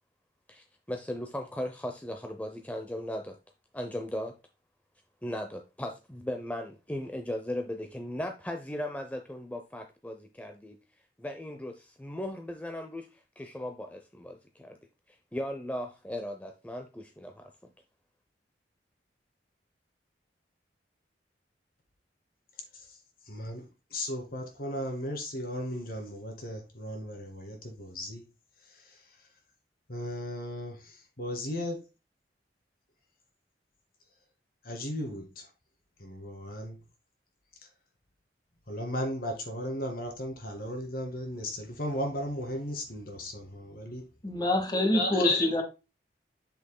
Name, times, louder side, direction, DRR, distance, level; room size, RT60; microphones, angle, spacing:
voice 1, 0.5-3.4 3.7-4.4 5.2-10.8 11.2-14.8 15.1-17.5, left 1 dB, 10° left, 0.6 m, -37 dB
voice 2, 23.3-23.6 23.9-28.2 29.9-30.8 31.2-31.8 34.6-35.4 36.0-36.8 38.7-44.0 44.9-45.6, left 1 dB, 55° left, 2.2 m, -35 dB
voice 3, 44.2-45.6, left 1 dB, 25° left, 1.7 m, -26 dB
7.6 x 6.7 x 2.2 m
head